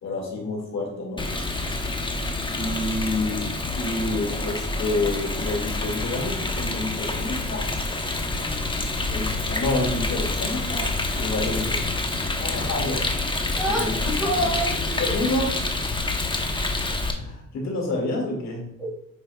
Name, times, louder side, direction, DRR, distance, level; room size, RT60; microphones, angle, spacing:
voice 1, 0.0-1.3 2.5-7.7 9.1-10.9 11.1-11.8 12.4-13.0 13.6-13.9 15.0-15.8 17.1-18.6, left 2 dB, 65° left, -1 dB, 2.2 m, -28 dB
Rain, 1.2-17.1, left 2 dB, 15° left, 1.0 m, -27 dB
voice 2, 13.6-15.1 18.8-18.9, right 1 dB, ahead, -5 dB, 2.1 m, -27 dB
8.3 x 5.2 x 2.4 m, 0.75 s
cardioid pair, 90°, 30 cm